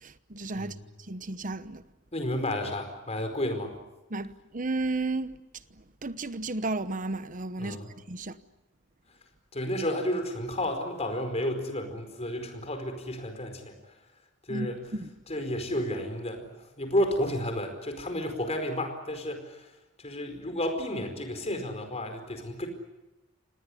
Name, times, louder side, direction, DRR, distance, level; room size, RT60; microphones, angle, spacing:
voice 1, 0.0-0.8 1.1-1.8 4.1-5.4 6.0-7.8 8.1-8.4 14.5-14.7 15.0-15.1, right 2 dB, 40° right, 1.1 m, -33 dB
voice 2, 2.1-3.7 7.6-7.9 9.5-13.7 14.5-14.8 15.3-19.7 20.0-22.7, left 1 dB, 35° left, 4.7 m, -31 dB
27.5 x 19.0 x 9.9 m
head